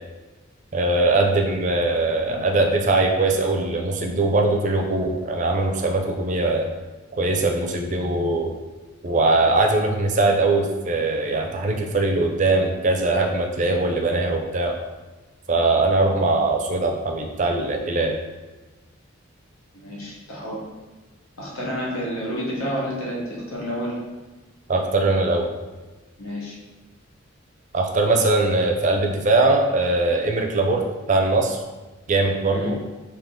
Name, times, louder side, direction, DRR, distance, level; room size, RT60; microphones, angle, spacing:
voice 1, 0.7-6.7 7.2-8.5 9.0-14.7 15.5-18.2 24.7-25.5 27.7-31.6 32.1-32.8, right 2 dB, 35° right, 2 dB, 0.4 m, -21 dB
voice 2, 19.7-20.6 21.4-24.0 26.2-26.6 32.5-32.7, equal, 85° left, -4 dB, 1.2 m, -29 dB
3.5 x 2.8 x 3.7 m, 1.2 s
head